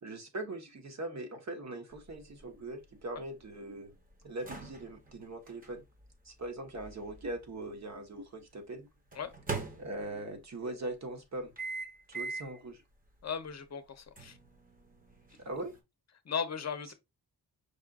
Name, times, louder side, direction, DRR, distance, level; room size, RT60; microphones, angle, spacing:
voice 1, 0.0-3.9 4.2-5.8 6.2-8.9 9.8-11.5 12.1-12.8 15.4-15.7, right 2 dB, 45° right, 1.1 m, -41 dB
sound 1, 1.9-8.0 9.1-10.4 11.6-12.6 13.1-13.2 14.2-15.8, right 4 dB, 20° right, 1.0 m, -43 dB
voice 2, 13.2-14.4 16.2-16.9, left 6 dB, 45° left, 0.8 m, -37 dB
5.3 x 2.5 x 3.5 m
wide cardioid pair, 145°, 37 cm